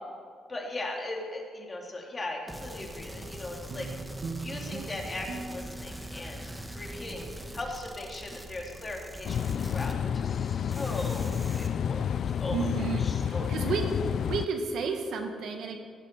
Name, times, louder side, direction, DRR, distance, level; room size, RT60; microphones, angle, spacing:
voice 1, 0.5-3.9 4.4-6.4 6.7-7.2 7.5-12.0 12.4-12.7 13.0-13.7, left 2 dB, 30° left, 0 dB, 2.9 m, -38 dB
sound 1, 2.5-10.4 10.7-11.7, right 1 dB, 10° right, 1.3 m, -43 dB
sound 2, 3.7-8.3, right 4 dB, 50° right, 1.3 m, -43 dB
sound 3, 9.2-14.5, left 8 dB, 60° left, 0.3 m, -30 dB
voice 2, 12.5-13.8 14.3-15.8, right 5 dB, 75° right, 4 dB, 1.7 m, -32 dB
17.0 x 7.6 x 6.8 m, 2.1 s
cardioid pair, 90°, 0 cm